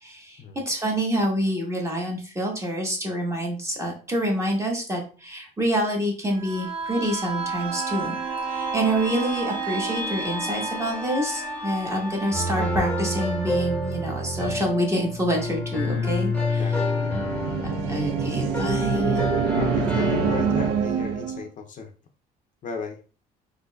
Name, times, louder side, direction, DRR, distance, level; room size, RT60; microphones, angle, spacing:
voice 1, 0.0-8.2 8.4-16.7 17.9-19.3, equal, 15° right, 0 dB, 1.1 m, -27 dB
sound 1, 6.3-15.9 16.3-16.4, right 3 dB, 60° right, 1.3 m, -32 dB
sound 2, 12.3-20.7, left 2 dB, 5° left, 0.9 m, -28 dB
voice 2, 16.6-17.2 18.9-19.1 19.5-21.9 22.6-23.0, left 5 dB, 50° left, 5 dB, 0.5 m, -35 dB
sound 3, 16.8-21.5, right 7 dB, 85° right, 0.4 m, -26 dB
3.9 x 2.6 x 2.3 m, 0.36 s
cardioid pair, 110°, 17 cm